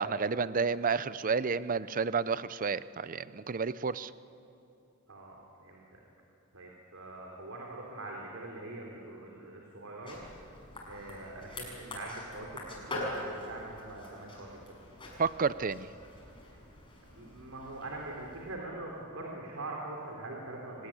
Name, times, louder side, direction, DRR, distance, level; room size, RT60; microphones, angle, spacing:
voice 1, 0.0-4.1 15.2-15.9, right 5 dB, 40° right, 16 dB, 0.6 m, -30 dB
voice 2, 5.1-6.0 6.5-10.2 10.9-14.7 17.1-20.9, right 2 dB, 80° right, -1 dB, 3.5 m, -43 dB
sound 1, 10.0-18.6, left 1 dB, 25° left, 7.0 m, -44 dB
25.0 x 19.5 x 9.9 m, 2.7 s
head